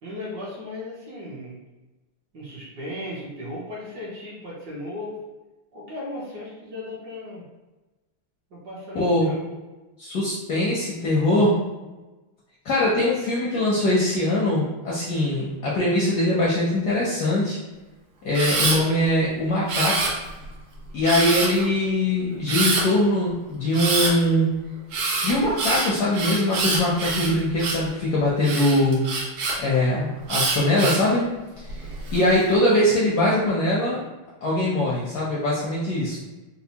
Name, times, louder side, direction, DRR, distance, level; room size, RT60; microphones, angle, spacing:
voice 1, 0.0-1.6 2.3-5.2 5.7-7.4 8.5-9.4, left 1 dB, 60° right, -7 dB, 1.3 m, -36 dB
voice 2, 8.9-9.3 10.0-11.6 12.6-17.6 18.2-20.1 20.9-24.5 25.2-29.0 29.6-31.3 31.6-34.0 34.4-36.2, left 1 dB, 70° left, -5 dB, 0.9 m, -22 dB
Camera, 18.3-18.8 19.7-20.4 21.0-21.6 22.5-22.8 23.7-24.1 24.9-27.9 28.4-29.5 30.3-31.1 31.7-32.2, right 3 dB, 80° right, 1.7 m, -25 dB
4.3 x 2.1 x 2.8 m, 1.1 s
omnidirectional pair, 2.4 m